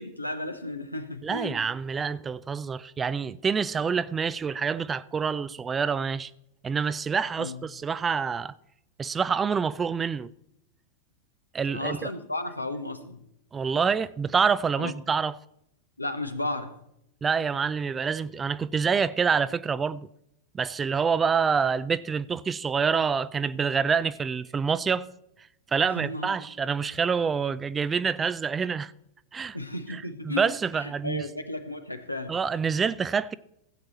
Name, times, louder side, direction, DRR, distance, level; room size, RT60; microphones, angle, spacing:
voice 1, 0.0-1.6 7.4-7.6 11.7-13.2 14.8-14.9 16.0-16.7 25.8-26.3 29.5-30.5 30.7-32.3, left 2 dB, 85° left, 1.0 m, -34 dB
voice 2, 1.2-6.3 6.6-8.5 9.0-10.3 11.5-12.1 13.5-15.4 17.2-20.1 20.5-25.1 25.7-28.9 29.3-29.6 29.9-31.2 32.3-33.3, right 6 dB, 20° right, 0.4 m, -27 dB
16.0 x 7.9 x 4.1 m
figure-of-eight pair, 90°, 0 cm